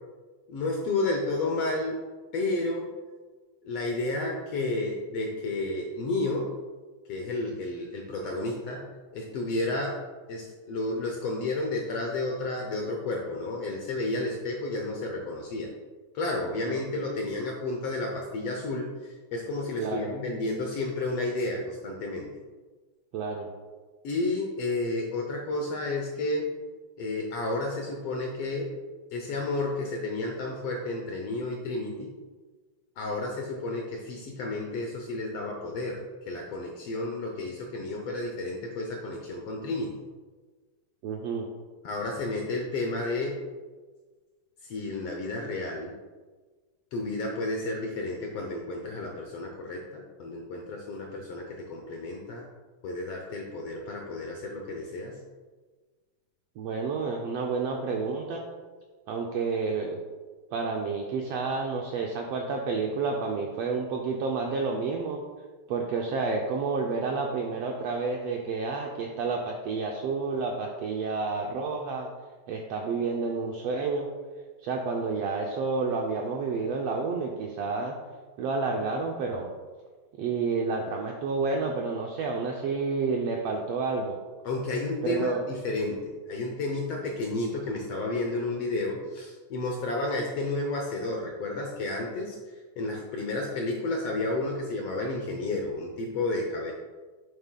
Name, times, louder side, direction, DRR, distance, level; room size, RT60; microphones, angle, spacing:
voice 1, 0.5-2.0 2.3-2.9 3.6-6.5 7.1-8.8 9.1-10.0 10.3-15.7 16.1-22.3 24.0-26.5 27.0-28.7 29.1-32.1 33.0-40.0 41.8-43.4 44.6-46.0 46.9-52.5 52.8-55.2 84.4-96.7, left 2 dB, 75° left, 1 dB, 1.4 m, -31 dB
voice 2, 19.8-20.1 23.1-23.5 41.0-41.5 56.6-58.5 59.1-60.0 60.5-65.2 65.7-72.1 72.5-74.1 74.6-78.0 78.4-79.5 80.2-84.1 85.0-85.4, right 4 dB, 85° right, 1 dB, 1.4 m, -30 dB
8.8 x 7.1 x 2.2 m, 1.4 s
omnidirectional pair, 3.5 m